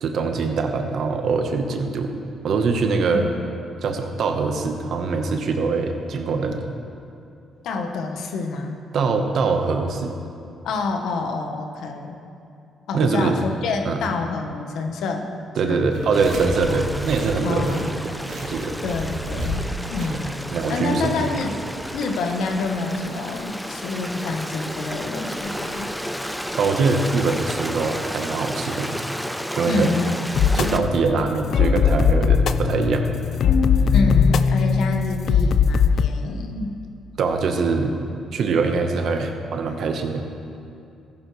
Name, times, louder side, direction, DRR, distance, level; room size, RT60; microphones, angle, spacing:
voice 1, 0.0-2.2 2.4-3.3 3.8-6.7 8.9-10.1 12.9-13.4 13.8-14.0 15.6-18.1 18.4-18.8 20.5-21.1 26.5-28.9 29.5-30.0 30.6-33.1 37.2-37.9 38.3-40.2, right 4 dB, 65° right, 5 dB, 1.1 m, -23 dB
voice 2, 7.6-8.8 10.6-12.2 12.9-15.3 15.6-15.9 16.7-16.9 17.4-17.9 18.8-21.6 21.9-25.9 29.6-30.1 30.4-30.7 33.9-36.7, left 3 dB, 80° left, 4 dB, 1.1 m, -27 dB
sound 1, 15.9-28.1, equal, 85° right, 2.7 m, -36 dB
Stream, 16.1-30.8, equal, ahead, 0.6 m, -32 dB
sound 2, 30.3-36.1, left 6 dB, 60° left, 0.4 m, -19 dB
14.5 x 11.5 x 3.2 m, 2.6 s
cardioid pair, 90°, 0 cm